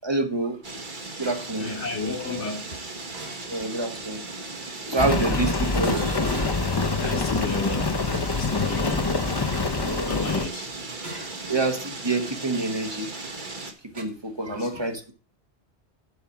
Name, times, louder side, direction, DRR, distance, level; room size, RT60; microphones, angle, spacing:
voice 1, 0.0-0.6 1.2-1.7 3.5-4.2 4.9-6.1 8.8-9.0 9.8-10.3 11.5-13.1 13.9-15.1, right 2 dB, 25° right, 1.4 m, -27 dB
sound 1, 0.6-13.7, right 3 dB, 45° right, 1.7 m, -37 dB
sound 2, 1.2-1.6 3.1-3.9 5.4-6.8 8.0-9.8 11.0-11.5 11.9-12.1 13.9-14.0, right 3 dB, 70° right, 2.1 m, -39 dB
voice 2, 1.6-2.6 7.0-7.9 8.4-9.1 10.1-10.7 14.4-14.7, left 3 dB, 90° left, 1.9 m, -32 dB
Rain, 5.0-10.5, left 3 dB, 25° left, 0.6 m, -25 dB
11.0 x 4.7 x 7.1 m
omnidirectional pair, 1.1 m